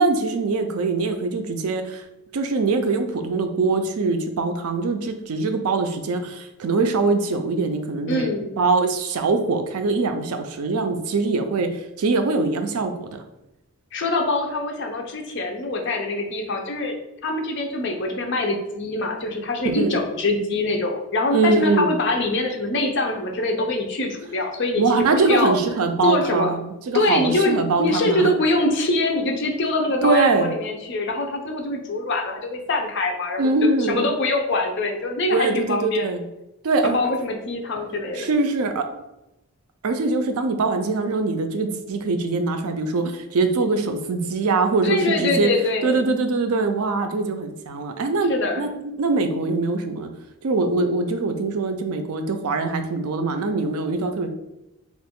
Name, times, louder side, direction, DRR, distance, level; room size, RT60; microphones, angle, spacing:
voice 1, 0.0-2.0 2.3-11.7 12.0-13.2 19.8-19.9 21.3-21.9 24.8-28.3 30.0-30.5 33.4-34.0 35.3-36.2 36.6-37.0 38.1-38.8 39.8-45.5 45.8-48.7 49.0-50.1 50.4-54.3, right 3 dB, 80° right, 7 dB, 0.4 m, -23 dB
voice 2, 8.1-8.5 13.9-16.9 17.2-25.6 26.0-26.5 26.9-36.1 36.9-38.3 44.8-46.0 48.3-48.6, left 2 dB, 50° left, 2 dB, 0.5 m, -24 dB
2.9 x 2.5 x 3.5 m, 0.92 s
head